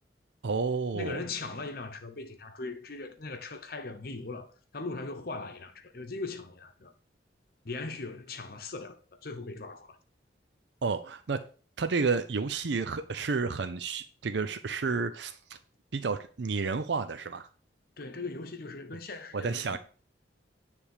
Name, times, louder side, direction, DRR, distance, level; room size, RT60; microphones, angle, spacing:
voice 1, 0.4-1.2 10.8-11.4 11.8-15.4 15.9-17.5 19.3-19.8, right 4 dB, 70° right, 0.5 m, -31 dB
voice 2, 0.9-6.9 7.6-10.0 18.0-19.8, left 3 dB, 55° left, 0.9 m, -39 dB
10.0 x 3.5 x 6.5 m
head